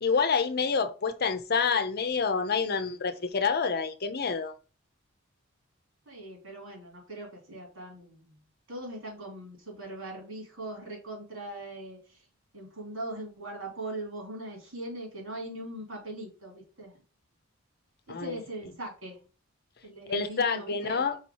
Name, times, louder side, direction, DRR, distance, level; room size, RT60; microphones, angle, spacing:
voice 1, 0.0-4.5 18.1-18.4 20.1-21.2, left 5 dB, 55° left, 0.7 m, -28 dB
voice 2, 6.0-8.4 8.7-12.2 12.5-16.9 18.1-19.2 19.8-21.0, right 1 dB, 85° right, 3.2 m, -40 dB
4.9 x 4.2 x 4.6 m
head